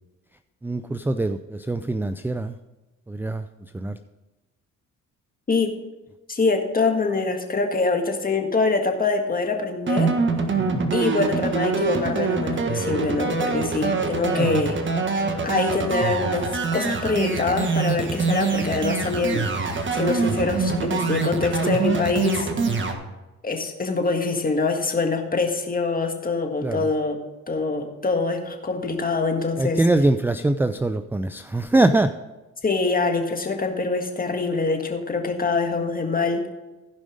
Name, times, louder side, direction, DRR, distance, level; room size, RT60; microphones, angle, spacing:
voice 1, 0.6-2.6 3.1-4.0 10.6-10.9 14.3-14.7 26.6-26.9 29.6-32.1, right 2 dB, 5° right, 11 dB, 0.4 m, -23 dB
voice 2, 6.3-10.1 10.9-14.8 15.4-19.4 19.9-22.5 23.4-27.2 27.5-29.8 32.6-36.5, left 3 dB, 30° left, 4 dB, 1.8 m, -24 dB
sound 1, 9.9-22.9, right 4 dB, 40° right, 1.5 m, -24 dB
15.5 x 5.3 x 5.0 m, 1.1 s
cardioid pair, 90°, 30 cm